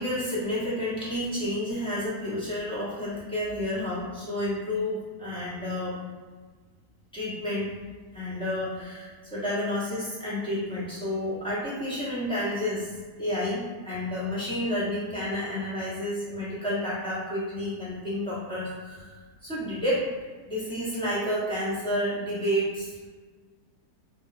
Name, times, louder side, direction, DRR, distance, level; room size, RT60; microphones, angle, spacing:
voice 1, 0.0-6.0 7.1-7.7 8.1-20.1 20.5-23.1, left 1 dB, 5° left, -10 dB, 0.8 m, -30 dB
3.6 x 2.6 x 2.5 m, 1.4 s
omnidirectional pair, 1.6 m